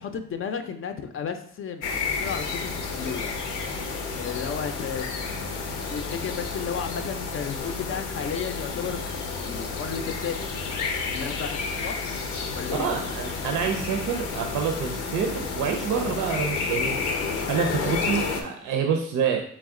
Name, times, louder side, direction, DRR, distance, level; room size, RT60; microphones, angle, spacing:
voice 1, 0.0-3.4 4.2-5.1 5.8-9.0 9.4-10.5 11.1-12.0 12.5-13.0, left 7 dB, 45° left, 7 dB, 0.5 m, -33 dB
sound 1, 1.8-18.4, left 4 dB, 90° left, 0.7 m, -31 dB
voice 2, 12.7-17.0 17.5-19.4, right 6 dB, 90° right, 4 dB, 0.5 m, -27 dB
3.5 x 3.1 x 3.6 m, 0.63 s
cardioid pair, 90°, 30 cm